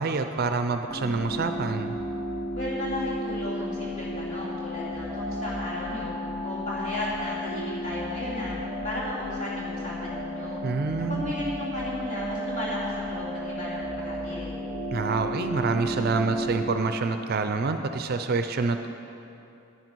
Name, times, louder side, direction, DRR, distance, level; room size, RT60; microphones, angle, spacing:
voice 1, 0.0-2.0 10.6-11.3 14.9-18.9, right 4 dB, 45° right, 7 dB, 0.4 m, -27 dB
sound 1, 0.9-16.7, equal, 55° left, 2.9 m, -33 dB
voice 2, 2.5-6.1 6.4-8.6 8.8-10.6 11.0-14.6, left 1 dB, 35° left, -8 dB, 3.2 m, -34 dB
10.0 x 9.3 x 6.2 m, 2.8 s
head